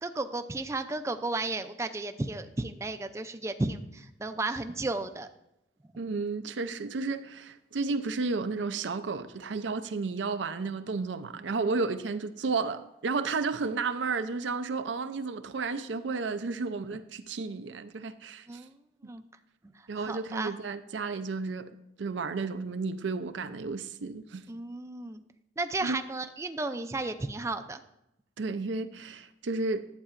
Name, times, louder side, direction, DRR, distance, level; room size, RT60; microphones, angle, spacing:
voice 1, 0.0-5.3 18.5-18.7 19.0-19.2 19.9-20.5 24.5-25.2 25.6-27.8, right 2 dB, 15° right, 0.4 m, -33 dB
voice 2, 6.0-18.6 19.9-21.7 22.0-24.4 25.8-26.0 28.4-29.9, right 4 dB, 90° right, 0.5 m, -32 dB
11.5 x 8.2 x 2.5 m
head